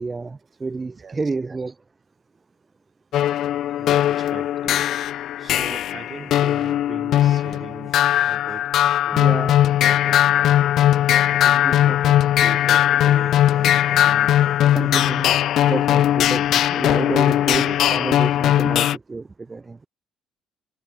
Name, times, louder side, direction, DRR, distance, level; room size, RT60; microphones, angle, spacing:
voice 1, 0.0-1.8 9.1-9.6 11.6-12.2 14.7-15.3 15.7-19.9, right 3 dB, 20° right, 1.5 m, -29 dB
sound 1, 3.1-19.0, left 12 dB, 65° left, 0.4 m, -19 dB
voice 2, 3.8-4.8 5.4-8.7 9.1-10.8 11.3-14.9 15.2-15.5 16.3-16.5 17.1-17.8, right 6 dB, 35° right, 5.0 m, -40 dB
cardioid pair, 115°, 0 cm